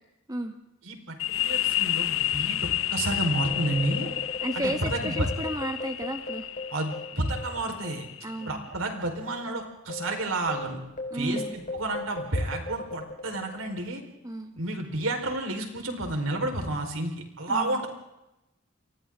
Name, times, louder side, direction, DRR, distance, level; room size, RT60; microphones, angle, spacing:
voice 1, 0.8-1.2 1.5-4.1 4.5-5.3 6.7-8.1 8.5-10.8 11.1-14.0 14.6-17.9, right 2 dB, 85° right, 3 dB, 4.5 m, -30 dB
sound 1, 1.2-8.7, left 13 dB, 70° left, 0.7 m, -31 dB
sound 2, 3.3-8.1 8.4-8.5 9.1-13.9, left 2 dB, 40° left, 4.8 m, -39 dB
voice 2, 4.4-6.5 8.2-8.7 11.1-11.6 14.2-14.5 17.5-17.8, right 1 dB, 20° right, 5 dB, 1.5 m, -33 dB
29.5 x 23.5 x 3.8 m, 0.91 s
head